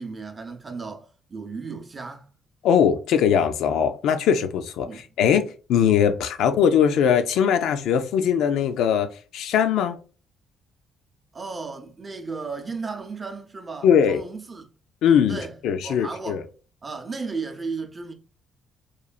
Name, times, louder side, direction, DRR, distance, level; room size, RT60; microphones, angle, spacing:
voice 1, 0.0-2.3 4.8-5.0 11.3-14.7 15.3-15.6 15.8-16.4 16.8-18.1, right 4 dB, 30° right, 0.5 m, -34 dB
voice 2, 2.6-10.0 13.8-14.2 15.0-16.4, left 8 dB, 85° left, 0.3 m, -21 dB
3.0 x 2.2 x 2.4 m
cardioid pair, 90°, 0 cm